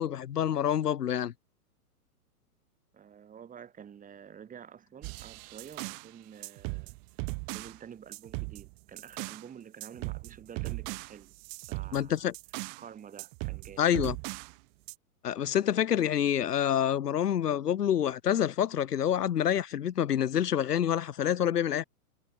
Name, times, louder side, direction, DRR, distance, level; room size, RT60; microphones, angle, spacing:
voice 1, 0.0-1.3 11.9-12.3 13.8-14.2 15.2-21.8, left 10 dB, 85° left, 2.1 m, -27 dB
voice 2, 2.9-7.0 7.5-11.3 11.7-12.3 12.8-13.9, right 8 dB, 15° right, 7.4 m, -49 dB
sound 1, 5.0-6.1 6.4-7.8 8.1-9.5 9.8-12.9 13.2-14.5 14.9-15.0, right 40 dB or more, 40° right, 4.1 m, -38 dB
hypercardioid pair, 140°, 46 cm